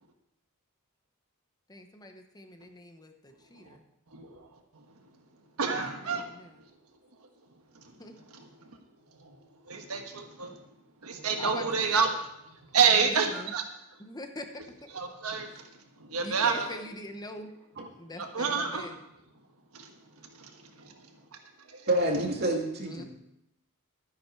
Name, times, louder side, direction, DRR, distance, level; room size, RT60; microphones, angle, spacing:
voice 1, 1.7-3.8 5.7-6.6 8.0-8.2 11.4-12.1 12.8-13.5 14.0-14.9 16.2-17.5 17.9-18.9 22.8-23.0, left 1 dB, 20° left, 5 dB, 0.9 m, -43 dB
voice 2, 4.1-4.5 5.6-6.3 7.7-7.9 9.2-9.4 9.7-10.6 11.0-12.1 12.7-13.6 14.9-15.7 16.0-16.7 18.2-18.9 19.7-19.9 20.3-20.9, right 5 dB, 80° right, 4 dB, 1.4 m, -28 dB
voice 3, 21.9-23.0, right 1 dB, 50° right, 0 dB, 2.2 m, -27 dB
12.5 x 10.0 x 4.7 m, 0.83 s
head